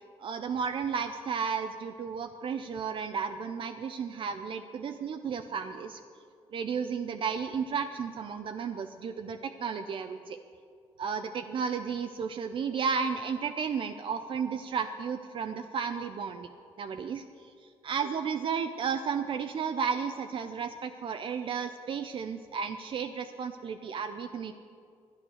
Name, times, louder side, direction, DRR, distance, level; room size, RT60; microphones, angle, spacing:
voice 1, 0.2-6.0 6.5-10.4 11.0-16.5 16.8-17.2 17.8-24.5, right 6 dB, 50° right, 7 dB, 0.5 m, -33 dB
11.5 x 9.7 x 6.3 m, 2.2 s
cardioid pair, 105°, 11 cm